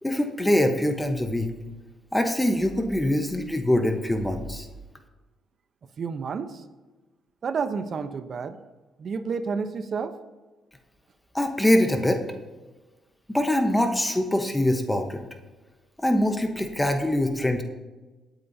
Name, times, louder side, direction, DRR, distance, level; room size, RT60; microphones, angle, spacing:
voice 1, 0.0-1.5 2.1-4.7 11.3-12.2 13.3-15.2 16.0-17.6, left 1 dB, 10° left, 5 dB, 1.1 m, -23 dB
voice 2, 6.0-6.6 7.4-8.6 9.0-10.2, right 5 dB, 50° right, 10 dB, 0.9 m, -30 dB
17.5 x 9.0 x 2.8 m, 1.2 s
cardioid pair, 90°, 0 cm